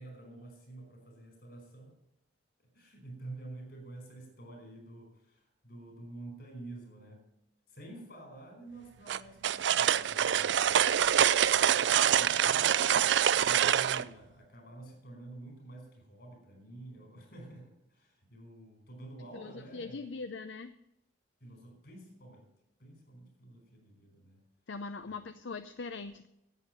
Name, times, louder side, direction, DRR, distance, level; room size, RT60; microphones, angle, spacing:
voice 1, 0.0-2.0 2.7-7.3 7.7-11.0 11.3-20.1 21.4-22.5 22.8-24.4 25.0-25.2, right 2 dB, 55° left, 2 dB, 5.2 m, -49 dB
sound 1, 9.1-14.0, right 9 dB, 75° right, 0.4 m, -25 dB
voice 2, 19.3-20.7 24.7-26.3, left 4 dB, 80° left, 10 dB, 0.6 m, -41 dB
11.0 x 8.4 x 9.0 m, 0.81 s
head